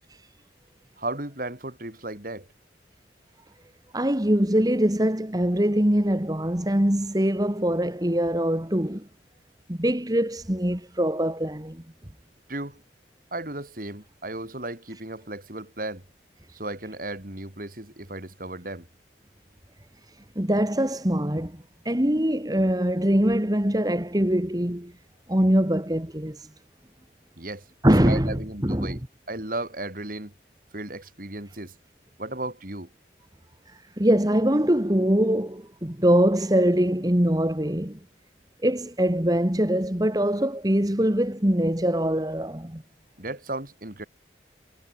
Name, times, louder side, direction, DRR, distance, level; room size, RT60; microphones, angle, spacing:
voice 1, 1.0-2.5 12.5-12.8 13.3-16.0 16.5-18.9 27.4-27.7 28.0-29.0 29.3-30.3 30.7-31.7 32.2-32.9 43.2-44.1, right 2 dB, 45° right, 3.9 m, -35 dB
voice 2, 3.9-9.1 9.7-11.8 20.4-24.9 25.3-26.5 27.8-29.0 33.7-38.0 38.6-42.8, equal, 20° right, 1.8 m, -23 dB
head